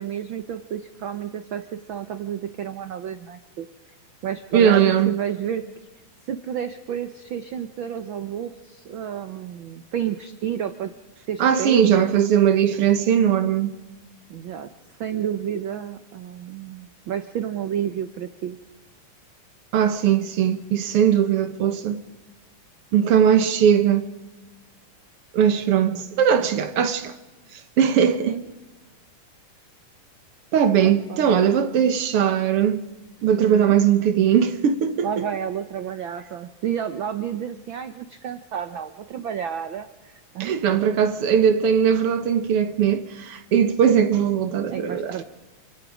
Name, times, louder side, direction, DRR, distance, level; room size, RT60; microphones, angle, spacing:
voice 1, 0.0-3.7 4.2-5.6 6.3-10.9 11.3-12.1 14.3-14.7 15.0-18.6 28.3-28.4 30.8-31.3 33.2-33.8 35.0-40.8 44.7-45.2, right 9 dB, 80° right, 1.1 m, -30 dB
voice 2, 4.5-5.1 11.4-13.7 19.7-22.0 22.9-24.1 25.3-27.1 27.8-28.4 30.5-32.8 33.2-35.1 40.4-45.2, right 8 dB, 60° right, 1.9 m, -19 dB
28.5 x 25.5 x 5.0 m
omnidirectional pair, 3.4 m